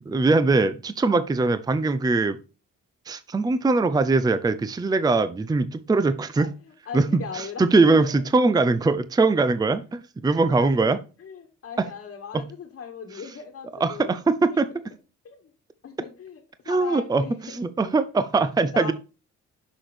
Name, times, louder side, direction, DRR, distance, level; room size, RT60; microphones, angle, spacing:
voice 1, 0.1-2.4 3.1-6.5 6.9-11.0 11.8-11.9 12.3-12.4 13.8-14.7 16.7-18.9, right 3 dB, 15° right, 12 dB, 0.5 m, -22 dB
voice 2, 6.4-8.1 10.6-10.9 11.2-14.2 15.2-15.5 15.8-18.0 18.7-18.9, left 6 dB, 50° left, 1 dB, 1.5 m, -39 dB
6.2 x 6.0 x 3.3 m, 0.31 s
cardioid pair, 90°, 30 cm